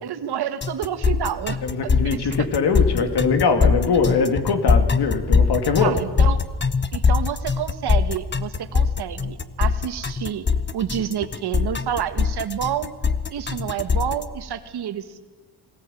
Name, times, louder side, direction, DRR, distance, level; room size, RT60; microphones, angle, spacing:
voice 1, 0.0-2.5 5.8-6.4 6.9-10.5 10.7-12.9 13.3-15.2, right 9 dB, 70° right, 9 dB, 1.6 m, -29 dB
sound 1, 0.6-14.2, left 5 dB, 25° left, 0.9 m, -22 dB
voice 2, 1.6-6.0, left 5 dB, 70° left, 7 dB, 2.6 m, -22 dB
22.0 x 18.0 x 9.2 m, 1.3 s
wide cardioid pair, 135°, 41 cm